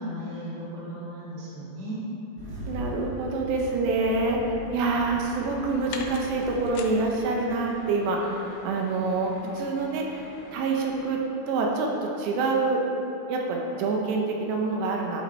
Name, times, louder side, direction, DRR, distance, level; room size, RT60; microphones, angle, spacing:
voice 1, 0.0-2.0, equal, 40° right, -10 dB, 2.1 m, -36 dB
Engine starting, 2.4-7.9, right 2 dB, 60° right, 3.5 m, -40 dB
voice 2, 2.7-12.8 13.3-15.2, right 3 dB, 80° right, 0 dB, 2.8 m, -26 dB
sound 1, 4.9-11.2, left 5 dB, 80° left, 2.8 m, -44 dB
11.5 x 5.6 x 4.1 m, 2.9 s
omnidirectional pair, 5.2 m